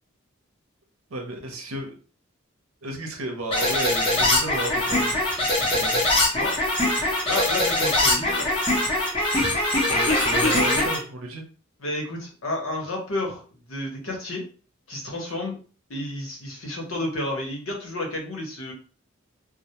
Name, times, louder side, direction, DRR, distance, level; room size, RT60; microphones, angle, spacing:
voice 1, 1.1-2.0 2.8-6.0 9.4-9.5 9.9-11.4, right 2 dB, 90° right, 2 dB, 0.7 m, -33 dB
sound 1, 3.5-11.0, left 1 dB, 25° left, 0.7 m, -22 dB
voice 2, 7.2-8.5 11.8-14.5 14.9-15.5 15.9-18.7, left 1 dB, 85° left, 0 dB, 0.9 m, -31 dB
2.1 x 2.1 x 2.8 m, 0.38 s
head